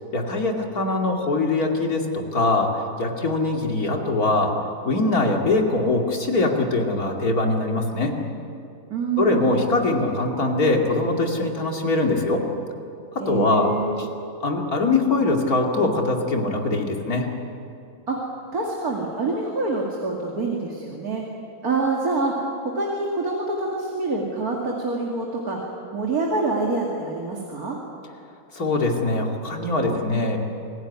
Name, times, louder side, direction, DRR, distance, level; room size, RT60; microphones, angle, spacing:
voice 1, 0.1-4.5 4.8-8.1 9.2-12.4 13.1-14.1 14.4-17.3 28.5-30.4, left 2 dB, 85° left, 1 dB, 3.0 m, -22 dB
voice 2, 8.9-9.7 13.2-14.1 18.1-18.2 18.5-21.2 21.6-22.3 22.6-25.6 25.9-27.8, right 3 dB, 85° right, -1 dB, 2.9 m, -26 dB
26.5 x 17.0 x 9.7 m, 2.7 s
omnidirectional pair, 1.5 m